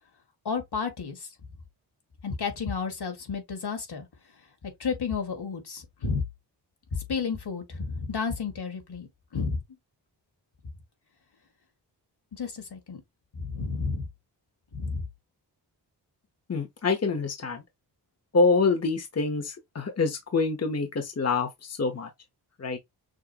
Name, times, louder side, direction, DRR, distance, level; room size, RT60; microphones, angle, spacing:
voice 1, 0.5-1.3 2.2-4.1 4.8-6.2 6.9-9.6 12.3-13.0 13.3-14.1 14.7-15.0, left 5 dB, 70° left, 1.9 m, -31 dB
voice 2, 16.5-17.6 18.3-22.1 22.6-22.8, left 4 dB, 35° left, 1.0 m, -26 dB
6.4 x 2.7 x 2.9 m
cardioid pair, 70°, 42 cm